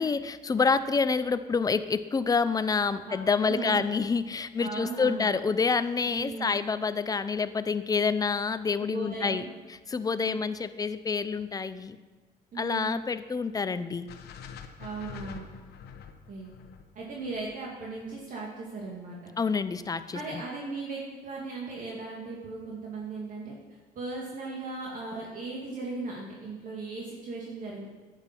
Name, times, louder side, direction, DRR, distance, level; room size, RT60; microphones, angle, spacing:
voice 1, 0.0-9.4 9.9-12.0 12.6-14.1 19.4-20.4, left 5 dB, 20° left, 13 dB, 0.6 m, -27 dB
voice 2, 3.4-3.8 4.6-5.3 6.2-6.5 8.8-9.5 10.2-10.4 12.5-13.0 14.8-15.5 16.3-16.5 16.9-19.3 20.1-23.5 24.0-27.9, right 3 dB, 50° right, -3 dB, 2.2 m, -37 dB
sound 1, 14.1-18.3, left 7 dB, 70° left, 1.1 m, -46 dB
10.0 x 8.9 x 6.0 m, 1.3 s
cardioid pair, 110°, 17 cm